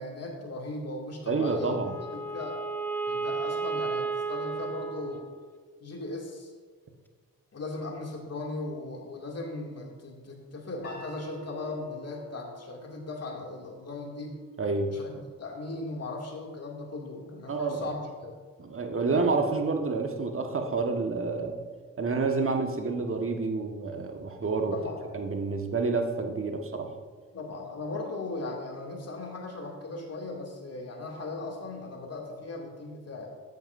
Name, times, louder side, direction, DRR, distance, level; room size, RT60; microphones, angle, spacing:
voice 1, 0.0-1.8 2.1-2.6 3.1-5.2 5.8-6.5 7.5-14.4 14.9-15.1 15.4-18.4 24.7-25.0 27.3-33.3, left 2 dB, 40° left, 0 dB, 2.6 m, -38 dB
voice 2, 1.3-1.9 14.6-14.9 17.5-17.9 18.6-21.6 22.0-24.8 25.1-26.9, right 4 dB, 35° right, 4 dB, 1.5 m, -29 dB
Wind instrument woodwind instrument, 1.4-5.8, right 4 dB, 5° left, 0.9 m, -34 dB
sound 1, 10.8-17.0, equal, 20° left, 3.0 m, -52 dB
13.5 x 9.3 x 2.7 m, 1.5 s
hypercardioid pair, 40°, 39 cm